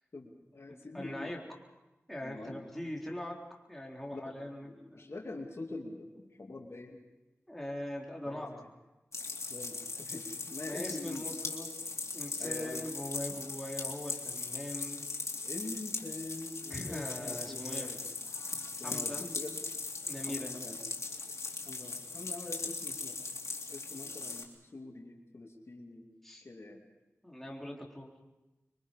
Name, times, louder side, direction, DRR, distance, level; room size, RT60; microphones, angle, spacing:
voice 1, 0.1-1.4 2.2-2.6 4.1-7.0 8.2-8.6 9.5-11.4 12.4-12.9 13.3-13.4 15.4-18.0 18.8-19.6 20.3-20.8 21.6-23.2 23.7-26.1 26.4-26.8, left 2 dB, 60° left, 1 dB, 2.7 m, -44 dB
voice 2, 0.7-1.4 2.1-3.4 3.7-5.1 7.5-8.5 10.6-11.8 12.1-15.0 16.7-17.9 18.8-19.3 20.1-20.5 26.2-26.5 27.2-28.1, left 1 dB, 5° left, -2 dB, 3.9 m, -41 dB
sound 1, 9.1-24.4, left 3 dB, 80° left, 2.9 m, -39 dB
26.0 x 23.5 x 5.5 m, 1.0 s
wide cardioid pair, 65°, 5 cm